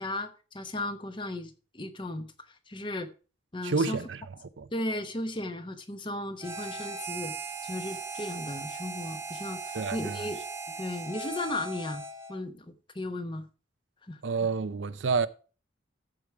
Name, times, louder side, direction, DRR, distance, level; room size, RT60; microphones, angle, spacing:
voice 1, 0.0-3.1 3.5-4.0 4.7-7.3 7.6-10.4 10.8-12.0 12.3-13.4 14.0-14.2, left 1 dB, 25° left, 1.0 m, -35 dB
voice 2, 3.6-4.2 4.6-4.7 9.7-10.3 14.2-15.3, right 4 dB, 75° right, 0.6 m, -29 dB
Harmonica, 6.4-12.4, right 3 dB, 10° right, 1.2 m, -38 dB
14.0 x 4.9 x 4.8 m
head